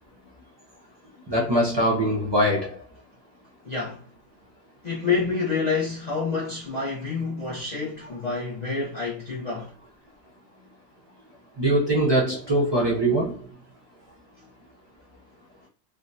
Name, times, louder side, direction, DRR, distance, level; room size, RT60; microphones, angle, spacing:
voice 1, 1.3-2.8 11.6-13.4, right 1 dB, 35° right, 0.4 m, -22 dB
voice 2, 3.6-4.0 4.8-9.7, left 4 dB, 40° left, 0.6 m, -28 dB
3.5 x 2.2 x 2.6 m
omnidirectional pair, 1.7 m